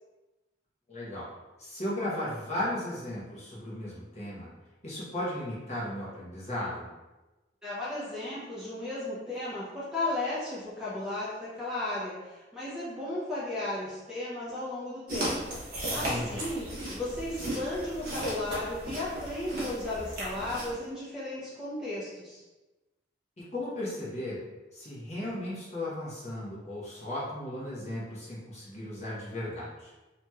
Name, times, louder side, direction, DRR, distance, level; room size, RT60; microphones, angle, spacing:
voice 1, 0.9-1.3 1.6-4.5 4.8-6.9 15.9-16.4 23.5-24.4 24.7-29.9, left 1 dB, 35° left, -7 dB, 0.8 m, -36 dB
voice 2, 7.6-15.4 15.9-16.7 16.9-22.4, left 2 dB, 5° right, -9 dB, 0.5 m, -35 dB
sound 1, 15.1-20.7, right 1 dB, 50° right, 0.9 m, -35 dB
2.9 x 2.9 x 2.3 m, 1.1 s
head